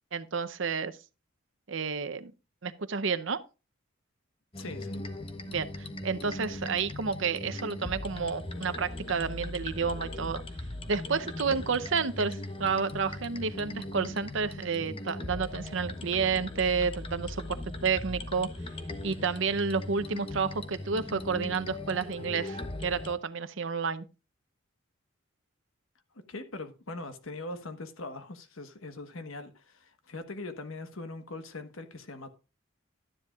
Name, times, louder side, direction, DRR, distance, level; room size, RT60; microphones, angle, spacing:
voice 1, 0.1-0.9 1.7-2.3 2.6-3.4 5.5-10.4 10.9-18.5 19.0-24.0, right 5 dB, 65° right, 0.7 m, -30 dB
sound 1, 4.5-23.1, left 1 dB, 25° left, 0.8 m, -39 dB
voice 2, 4.6-5.1 26.1-32.3, left 2 dB, 80° left, 1.2 m, -41 dB
12.0 x 10.0 x 2.4 m
head